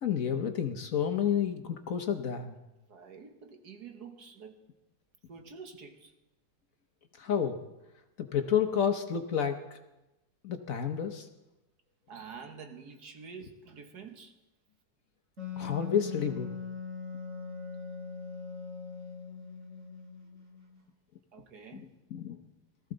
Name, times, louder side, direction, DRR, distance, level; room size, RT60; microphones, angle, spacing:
voice 1, 0.0-2.6 7.2-7.6 8.2-9.8 10.4-11.3 15.6-16.5 21.7-21.8 22.1-22.4, left 8 dB, 55° left, 1.1 m, -30 dB
voice 2, 2.9-4.7 5.3-6.1 12.1-14.4 21.3-21.9, right 5 dB, 65° right, 1.8 m, -48 dB
Wind instrument woodwind instrument, 15.4-20.8, left 5 dB, 45° right, 2.3 m, -41 dB
18.5 x 14.0 x 3.9 m
omnidirectional pair, 1.9 m